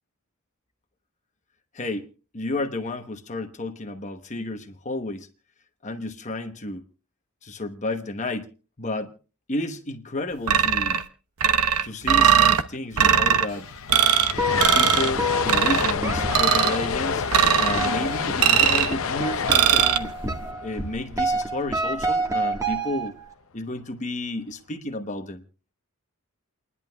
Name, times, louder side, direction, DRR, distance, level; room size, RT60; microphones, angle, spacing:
voice 1, 1.7-2.1 2.3-5.3 5.8-6.8 7.4-8.5 8.8-9.1 9.5-11.0 11.8-13.7 14.5-17.3 17.6-20.2 20.6-23.1 23.5-25.4, left 2 dB, 35° left, 1.0 m, -31 dB
sound 1, 10.5-11.0 11.4-12.6 13.0-13.5 13.9-14.3 14.6-15.1 15.5-15.9 16.3-16.8 17.3-17.9 18.4-18.9 19.5-20.0, right 8 dB, 85° right, 0.9 m, -19 dB
sound 2, 13.4-21.5, left 6 dB, 60° left, 0.7 m, -28 dB
sound 3, 14.3-23.3, right 1 dB, 15° right, 1.4 m, -29 dB
29.5 x 11.0 x 2.3 m
head